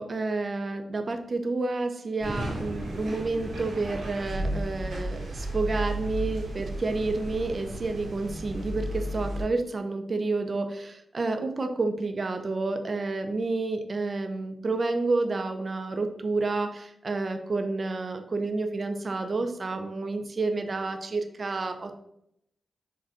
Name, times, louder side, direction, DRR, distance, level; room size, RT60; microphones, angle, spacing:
voice 1, 0.0-22.0, right 3 dB, 50° right, 6 dB, 0.4 m, -30 dB
sound 1, 2.2-9.4, right 1 dB, 85° right, 1.0 m, -34 dB
4.9 x 2.2 x 2.5 m, 0.77 s
cardioid pair, 60°, 0 cm